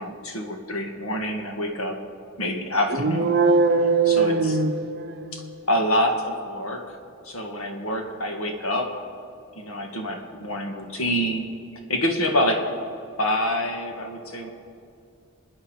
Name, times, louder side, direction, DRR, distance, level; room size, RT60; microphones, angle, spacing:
voice 1, 0.0-2.0 2.4-3.4 4.0-4.6 5.3-5.4 5.7-7.0 7.3-9.1 9.6-11.5 11.9-12.7 13.2-14.5, left 1 dB, 90° left, 3 dB, 1.9 m, -26 dB
sound 1, 2.9-5.5, right 4 dB, 50° right, 0.6 m, -21 dB
27.0 x 9.5 x 4.6 m, 2.6 s
head